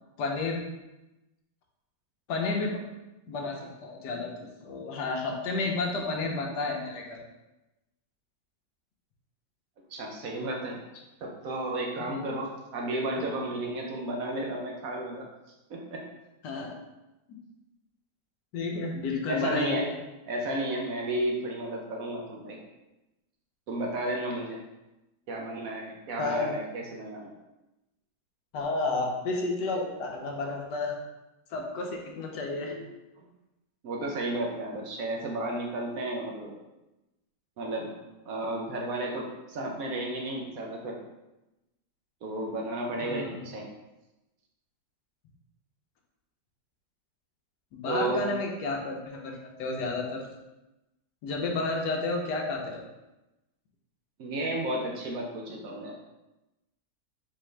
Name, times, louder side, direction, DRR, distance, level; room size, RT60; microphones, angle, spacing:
voice 1, 0.2-0.6 2.3-2.7 3.3-7.2 12.0-12.2 16.4-16.7 18.5-19.9 26.2-26.6 28.5-30.9 31.5-32.8 43.0-43.4 47.7-50.2 51.2-52.8, left 3 dB, 90° left, 1 dB, 1.4 m, -31 dB
voice 2, 9.9-10.8 11.2-15.3 15.7-16.0 19.3-19.9 20.3-22.6 23.7-24.6 25.3-27.3 32.5-32.9 33.2-33.3 33.8-36.5 37.6-37.9 38.2-41.0 42.2-43.7 47.9-48.2 54.2-55.9, right 1 dB, 65° right, 0 dB, 1.0 m, -33 dB
4.0 x 3.7 x 3.2 m, 0.99 s
omnidirectional pair, 1.8 m